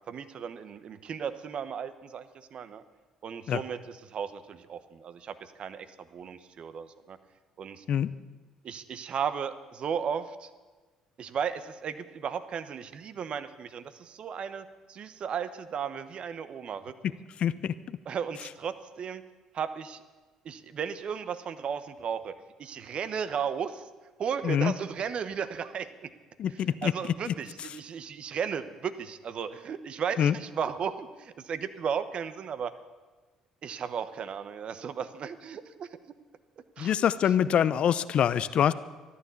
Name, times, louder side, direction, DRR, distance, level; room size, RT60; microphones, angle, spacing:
voice 1, 0.1-2.8 3.2-7.2 7.6-7.8 8.6-10.5 11.2-16.9 18.1-19.2 19.5-20.0 20.4-22.3 22.6-23.9 24.2-26.1 26.8-32.7 33.6-35.9 36.8-36.9, right 7 dB, 55° right, 12 dB, 1.1 m, -35 dB
voice 2, 17.4-18.0 24.4-24.7 26.4-27.3 30.2-30.3 36.8-38.7, left 9 dB, 60° left, 16 dB, 0.7 m, -25 dB
14.0 x 11.5 x 8.4 m, 1.3 s
hypercardioid pair, 55°, 2 cm